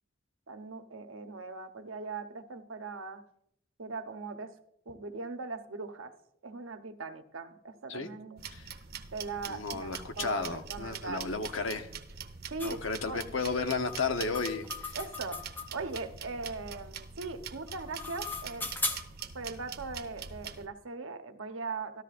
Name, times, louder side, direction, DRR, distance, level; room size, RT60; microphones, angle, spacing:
voice 1, 0.5-3.2 3.8-4.5 4.9-6.1 6.4-8.4 9.1-11.2 12.5-13.2 14.9-18.7 19.3-22.0, right 3 dB, 80° right, 7 dB, 1.0 m, -40 dB
sound 1, 8.4-20.7, right 6 dB, 50° right, 0.8 m, -44 dB
voice 2, 9.5-11.9 12.6-15.0, left 4 dB, 80° left, 7 dB, 1.0 m, -33 dB
sound 2, 12.6-12.8 13.9-16.0 17.7-19.3, left 3 dB, 10° left, 0.7 m, -38 dB
14.0 x 13.0 x 2.5 m, 0.72 s
head